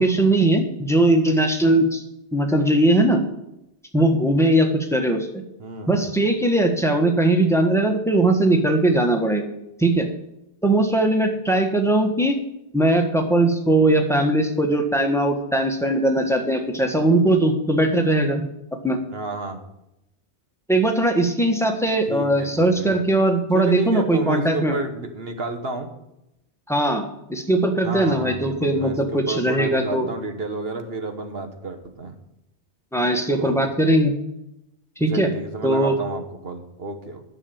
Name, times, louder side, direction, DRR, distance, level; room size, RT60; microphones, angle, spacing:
voice 1, 0.0-2.0 2.3-3.2 3.9-5.3 5.9-9.5 9.8-10.1 10.6-12.4 12.7-18.4 18.8-19.0 20.7-24.7 26.7-30.1 32.9-34.1 35.0-35.3 35.6-35.9, right 1 dB, ahead, 3 dB, 1.5 m, -20 dB
voice 2, 5.6-6.0 19.1-19.6 22.1-22.9 23.5-25.9 27.8-32.2 33.4-33.6 35.1-37.2, right 3 dB, 60° right, 6 dB, 1.5 m, -31 dB
11.0 x 6.6 x 8.8 m, 0.86 s
omnidirectional pair, 1.1 m